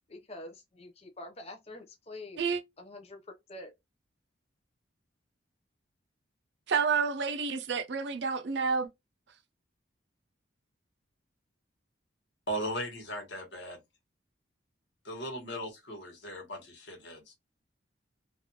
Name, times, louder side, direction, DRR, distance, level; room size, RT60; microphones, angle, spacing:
voice 1, 0.1-2.4 2.8-3.7, left 1 dB, 30° left, 0.6 m, -46 dB
voice 2, 6.7-8.9, right 5 dB, 65° right, 0.5 m, -29 dB
voice 3, 12.5-13.8 15.0-17.3, equal, 65° left, 1.4 m, -38 dB
3.3 x 2.4 x 2.8 m
head